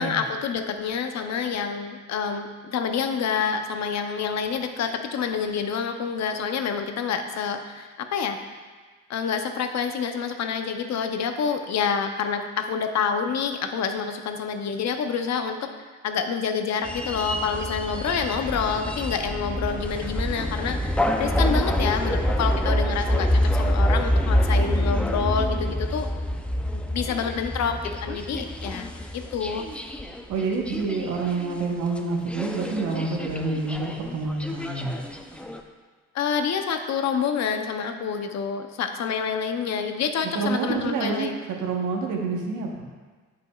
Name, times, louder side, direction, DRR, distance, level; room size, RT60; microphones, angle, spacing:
voice 1, 0.0-8.4 9.1-15.7 16.0-26.1 26.9-29.6 36.1-41.4, left 6 dB, 60° left, 7 dB, 0.7 m, -28 dB
sound 1, 16.8-31.6 32.0-32.1 32.3-35.6, equal, 5° left, 0.5 m, -26 dB
voice 2, 30.3-35.0 40.2-42.8, right 4 dB, 85° right, 1 dB, 1.1 m, -28 dB
11.0 x 5.1 x 2.3 m, 1.4 s
cardioid pair, 90°, 30 cm